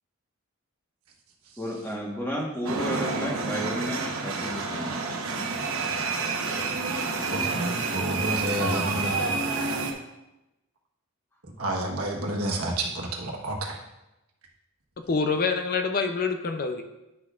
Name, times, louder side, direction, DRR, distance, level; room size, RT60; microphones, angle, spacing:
voice 1, 1.6-5.6 5.9-6.0, equal, 10° left, -2 dB, 1.2 m, -33 dB
sound 1, 2.6-9.9, right 4 dB, 70° right, 1.0 m, -29 dB
voice 2, 7.3-9.3 11.4-13.8, right 1 dB, 90° right, 0 dB, 1.3 m, -30 dB
voice 3, 15.1-16.8, left 4 dB, 40° left, 6 dB, 0.5 m, -26 dB
9.6 x 6.1 x 2.4 m, 0.95 s
head